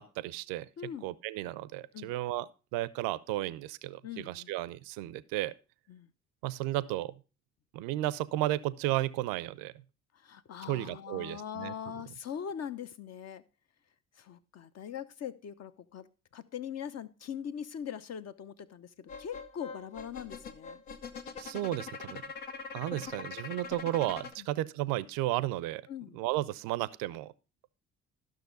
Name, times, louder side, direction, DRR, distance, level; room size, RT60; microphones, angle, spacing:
voice 1, 0.0-0.7 1.0-5.5 6.4-7.1 7.7-9.7 10.7-11.7 21.4-22.2 22.7-25.8 26.1-27.3, right 16 dB, 70° right, 19 dB, 0.5 m, -33 dB
voice 2, 0.8-1.1 1.9-2.1 4.0-4.5 5.9-6.1 10.1-13.4 14.2-16.1 16.3-20.8 22.8-23.1 24.4-24.5 25.9-26.2, left 8 dB, 45° left, 12 dB, 0.8 m, -41 dB
sound 1, 19.1-24.3, left 5 dB, 70° left, 1.0 m, -43 dB
12.0 x 6.3 x 3.9 m, 0.32 s
hypercardioid pair, 45°, 37 cm